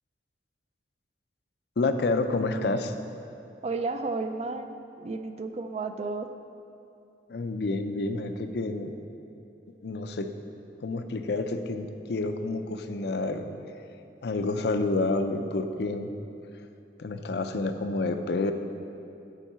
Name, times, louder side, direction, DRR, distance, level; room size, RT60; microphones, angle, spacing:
voice 1, 1.8-2.9 7.3-8.9 9.8-10.3 10.8-13.5 14.2-16.1 17.0-18.5, left 3 dB, 60° left, 8 dB, 0.5 m, -29 dB
voice 2, 3.6-6.3, right 3 dB, 35° right, 8 dB, 0.3 m, -32 dB
7.3 x 4.6 x 6.8 m, 2.8 s
head